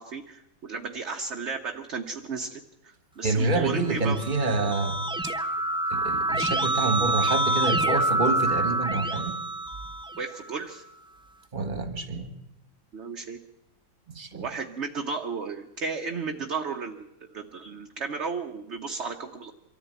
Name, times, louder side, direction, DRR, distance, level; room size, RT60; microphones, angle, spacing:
voice 1, 0.0-4.2 10.2-10.8 12.9-13.4 14.3-19.5, right 4 dB, 45° right, 3 dB, 1.2 m, -34 dB
voice 2, 3.2-5.0 5.2-5.3 5.9-9.4 11.5-12.3 14.1-14.5, right 3 dB, 25° right, 9 dB, 1.7 m, -27 dB
Keyboard (musical), 3.8-10.4, right 2 dB, 5° right, 0.3 m, -27 dB
24.0 x 14.0 x 9.3 m, 0.87 s
omnidirectional pair, 2.0 m